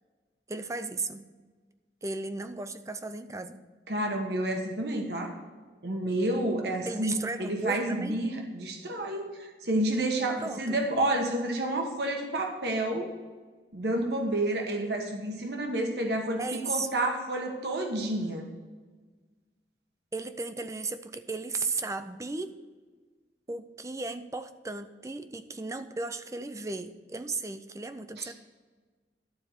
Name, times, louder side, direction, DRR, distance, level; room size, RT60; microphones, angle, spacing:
voice 1, 0.5-1.3 2.0-3.6 6.9-8.2 10.4-10.8 16.4-16.9 20.1-22.6 23.5-28.3, right 3 dB, 20° right, 10 dB, 0.5 m, -35 dB
voice 2, 3.9-5.4 5.8-7.1 7.4-13.1 13.7-18.5 28.2-28.3, right 1 dB, 65° right, 3 dB, 1.3 m, -30 dB
12.0 x 4.5 x 8.0 m, 1.4 s
head